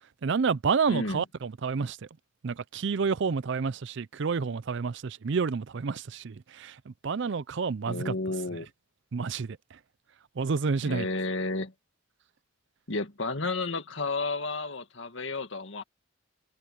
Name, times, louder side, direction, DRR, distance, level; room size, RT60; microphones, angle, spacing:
voice 1, 0.2-2.0 2.4-8.1 9.1-9.6 10.4-11.1, right 5 dB, 55° right, 0.5 m, -29 dB
voice 2, 0.9-1.2 7.9-8.7 10.8-11.7 12.9-15.8, left 3 dB, 60° left, 2.0 m, -32 dB
head